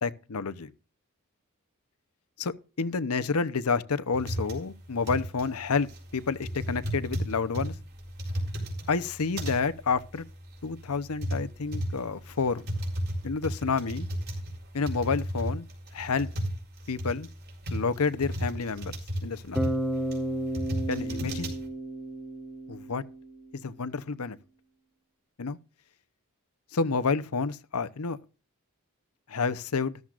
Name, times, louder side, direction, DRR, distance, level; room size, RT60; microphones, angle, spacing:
voice 1, 0.0-0.7 2.4-7.8 8.9-10.3 10.6-12.6 13.2-14.1 14.7-15.7 15.9-16.3 16.9-17.3 17.7-18.9 19.2-19.7 20.9-21.6 22.7-23.0 23.5-24.4 25.4-25.6 26.7-28.2 29.3-30.0, left 4 dB, 80° left, 0.8 m, -29 dB
sound 1, 4.1-21.7, equal, 45° right, 4.0 m, -34 dB
Bass guitar, 19.6-23.6, right 1 dB, ahead, 1.0 m, -33 dB
13.5 x 13.0 x 2.5 m
head